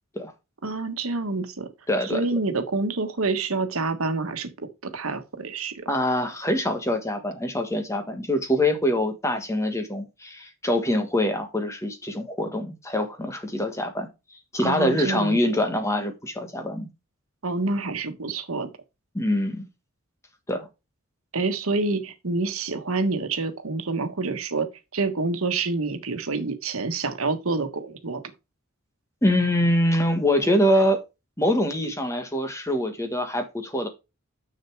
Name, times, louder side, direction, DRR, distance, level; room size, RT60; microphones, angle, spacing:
voice 1, 0.6-1.7 2.1-5.8 14.6-15.4 17.4-18.7 21.3-24.7 24.9-28.2, right 3 dB, 80° right, 1.3 m, -27 dB
voice 2, 1.9-2.4 5.9-14.1 14.5-16.9 19.1-19.6 20.5-20.7 29.2-31.0 31.4-33.9, left 1 dB, 15° left, 1.4 m, -24 dB
6.9 x 6.5 x 4.6 m
head